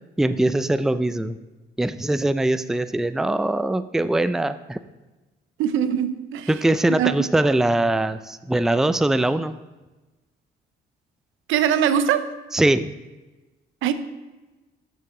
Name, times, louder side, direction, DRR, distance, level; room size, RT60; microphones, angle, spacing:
voice 1, 0.2-1.4 1.8-4.8 6.5-9.5 12.5-12.9, right 1 dB, ahead, 12 dB, 0.4 m, -22 dB
voice 2, 5.6-6.5 7.0-7.1 11.5-12.3 13.8-13.9, right 9 dB, 85° right, 11 dB, 0.7 m, -21 dB
13.5 x 6.8 x 3.8 m, 1.1 s
cardioid pair, 90°, 20 cm